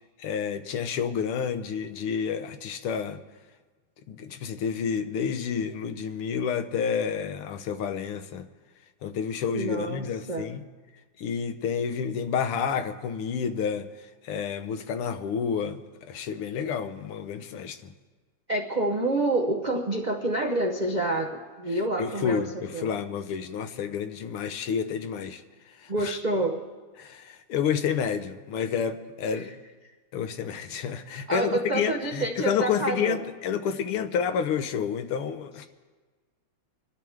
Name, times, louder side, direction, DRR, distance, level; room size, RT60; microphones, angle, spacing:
voice 1, 0.2-3.2 4.1-8.5 9.0-10.6 11.2-17.9 22.0-25.4 25.8-26.2 27.0-29.5 30.1-35.7, left 7 dB, 85° left, 8 dB, 1.8 m, -30 dB
voice 2, 9.5-10.5 18.5-23.0 25.9-26.6 29.3-29.5 31.3-33.2, right 2 dB, 85° right, 1 dB, 0.4 m, -28 dB
25.5 x 12.5 x 3.6 m, 1.4 s
omnidirectional pair, 2.4 m